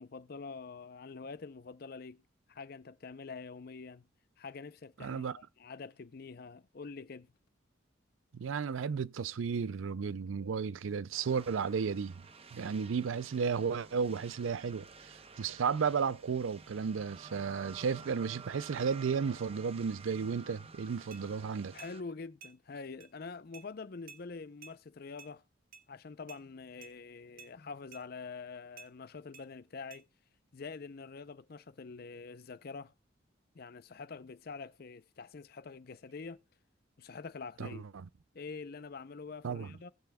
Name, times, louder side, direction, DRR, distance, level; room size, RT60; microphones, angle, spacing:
voice 1, 0.0-2.2 2.5-4.1 4.4-7.3 21.7-25.4 25.9-30.1 30.5-32.9 33.5-36.4 37.0-37.8 38.3-39.9, left 4 dB, 50° left, 0.5 m, -46 dB
voice 2, 5.0-5.4 8.3-12.2 12.5-21.7 37.6-38.0 39.4-39.7, right 6 dB, 80° right, 0.4 m, -34 dB
sound 1, 11.1-22.0, right 5 dB, 30° right, 0.8 m, -52 dB
sound 2, 21.1-21.2 21.8-22.0 22.4-22.6 23.0-23.1 23.5-23.7 24.1-24.2 24.6-24.8 25.2-25.3 25.7-25.9 26.3-26.4 26.8-26.9 27.4-27.5 27.9-28.1 28.8-28.9 29.3-29.5 29.9-30.0, right 6 dB, 50° right, 1.7 m, -52 dB
20.0 x 6.9 x 2.3 m
head